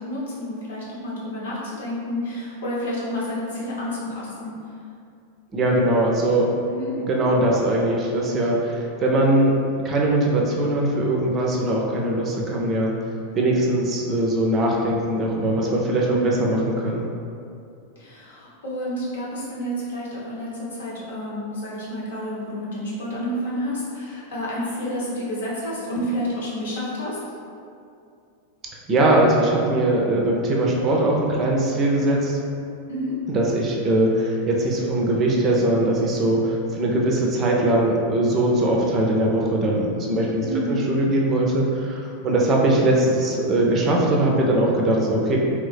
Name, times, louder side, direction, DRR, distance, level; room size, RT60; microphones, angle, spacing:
voice 1, 0.0-4.5 6.7-7.0 16.0-16.4 18.0-27.2 32.9-33.2 40.4-40.8, equal, 65° left, -6 dB, 0.9 m, -29 dB
voice 2, 5.5-6.5 7.0-9.6 9.8-12.9 13.4-17.0 28.9-32.4 33.3-45.4, right 1 dB, 30° right, -2 dB, 0.5 m, -21 dB
2.9 x 2.7 x 3.3 m, 2.5 s
figure-of-eight pair, 90°, 0 cm